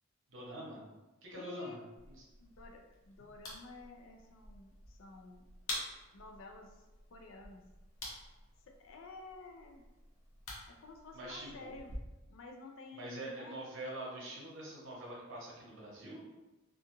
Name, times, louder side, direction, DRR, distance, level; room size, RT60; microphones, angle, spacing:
voice 1, 0.3-0.8 1.2-1.8 11.1-11.7 12.9-16.2, right 1 dB, 65° right, -4 dB, 0.8 m, -44 dB
voice 2, 1.3-1.8 2.4-5.4 6.1-7.6 8.7-9.8 10.7-11.9 12.3-13.7, left 3 dB, 65° left, 3 dB, 0.4 m, -52 dB
sound 1, 2.0-12.0, left 1 dB, 80° left, 0.8 m, -49 dB
2.4 x 2.3 x 2.9 m, 1.1 s
head